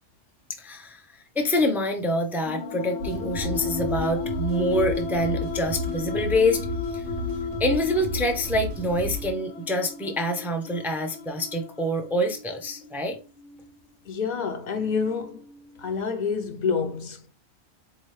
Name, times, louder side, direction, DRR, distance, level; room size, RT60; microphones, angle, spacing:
voice 1, 0.6-1.0 1.4-6.7 6.9-7.0 7.6-13.2, left 1 dB, 5° right, 0.3 m, -26 dB
sound 1, 2.5-16.0, left 5 dB, 80° left, 1.0 m, -35 dB
sound 2, 3.0-9.3, equal, 85° right, 1.0 m, -33 dB
voice 2, 14.1-15.4 15.8-17.3, left 5 dB, 45° left, 0.7 m, -28 dB
4.4 x 2.8 x 3.2 m
omnidirectional pair, 1.3 m